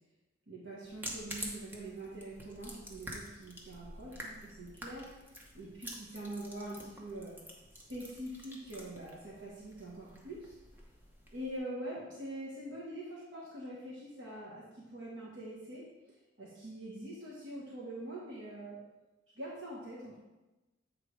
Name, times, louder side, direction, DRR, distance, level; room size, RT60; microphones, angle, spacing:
voice 1, 0.5-5.1 5.5-7.4 7.9-10.6 11.3-15.8 16.4-18.8 19.3-20.2, right 1 dB, 80° right, -6 dB, 1.4 m, -44 dB
sound 1, 0.8-11.6, equal, 10° right, 0.9 m, -48 dB
8.1 x 3.6 x 4.7 m, 1.1 s
head